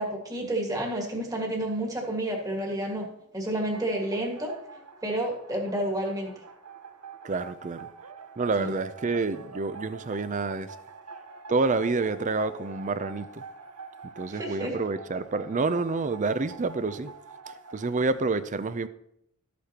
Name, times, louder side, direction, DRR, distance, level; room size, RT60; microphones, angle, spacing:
voice 1, 0.0-3.1 3.3-4.5 5.0-6.3 8.6-8.7 14.3-14.7, right 1 dB, 15° right, 1.7 m, -30 dB
sound 1, 3.4-18.1, right 4 dB, 85° right, 1.0 m, -45 dB
voice 2, 7.2-7.9 8.4-10.7 11.5-13.4 14.2-17.1 17.7-18.9, right 3 dB, 35° right, 0.5 m, -28 dB
12.5 x 8.3 x 2.9 m
head